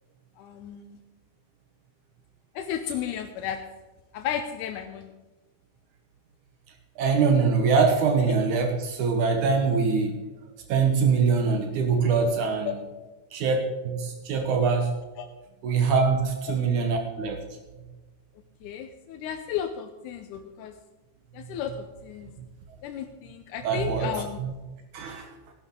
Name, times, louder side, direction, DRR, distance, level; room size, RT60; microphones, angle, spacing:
voice 1, 0.4-1.0 2.6-3.6 4.1-5.1 8.2-8.3 12.6-12.7 15.2-15.3 16.5-16.6 18.6-20.7 21.3-22.3 22.8-24.4, left 9 dB, 90° left, 5 dB, 2.3 m, -33 dB
voice 2, 7.0-10.2 10.7-12.8 13.3-13.6 13.8-14.9 15.6-17.4 22.4-22.5 23.6-24.1 24.4-24.5 24.9-25.3, right 5 dB, 80° right, 5 dB, 2.6 m, -23 dB
16.5 x 11.5 x 3.7 m, 1.2 s
omnidirectional pair, 3.5 m